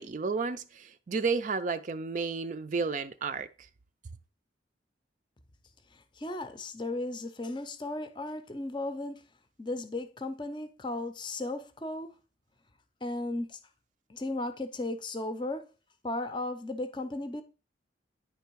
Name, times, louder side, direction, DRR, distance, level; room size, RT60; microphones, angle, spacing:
voice 1, 0.0-3.5, right 4 dB, 45° right, 0.4 m, -32 dB
voice 2, 5.9-9.2 9.6-12.2 13.0-13.6 14.1-15.7 16.0-17.4, left 2 dB, 25° left, 0.6 m, -35 dB
10.0 x 3.4 x 4.6 m
head